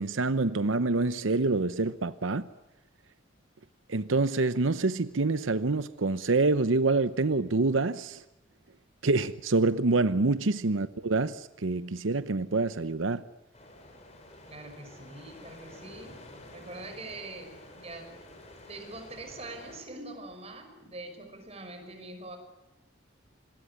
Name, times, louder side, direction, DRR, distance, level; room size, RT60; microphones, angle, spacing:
voice 1, 0.0-2.5 3.9-8.2 9.0-13.2, right 3 dB, 90° right, 0.9 m, -26 dB
sound 1, 13.5-19.8, left 1 dB, 35° left, 5.7 m, -50 dB
voice 2, 14.5-16.2 16.5-18.2 18.7-22.4, right 2 dB, 30° right, 5.5 m, -44 dB
26.0 x 21.0 x 9.7 m
head